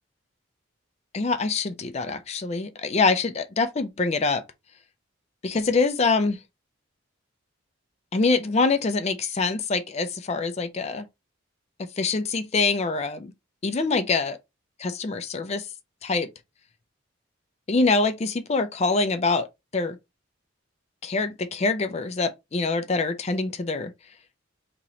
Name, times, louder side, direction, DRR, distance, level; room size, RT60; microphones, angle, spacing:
voice 1, 1.1-4.4 5.4-6.4 8.1-11.1 12.0-13.3 13.6-14.4 14.8-15.7 16.0-16.3 17.7-19.5 19.7-20.0 21.0-23.9, left 3 dB, 30° left, 0.4 m, -25 dB
3.0 x 2.9 x 3.7 m
head